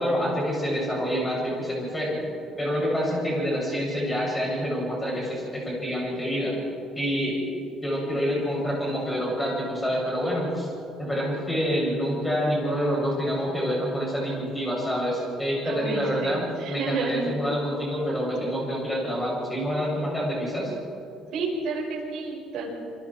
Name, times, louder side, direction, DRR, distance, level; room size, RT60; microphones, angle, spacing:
voice 1, 0.0-2.3 2.6-6.6 6.9-7.4 7.8-10.7 11.0-20.7, equal, 10° left, -4 dB, 7.2 m, -27 dB
voice 2, 15.6-17.3 21.3-22.7, right 4 dB, 60° right, -2 dB, 6.2 m, -30 dB
27.5 x 23.5 x 4.6 m, 2.4 s
cardioid pair, 180°, 0 cm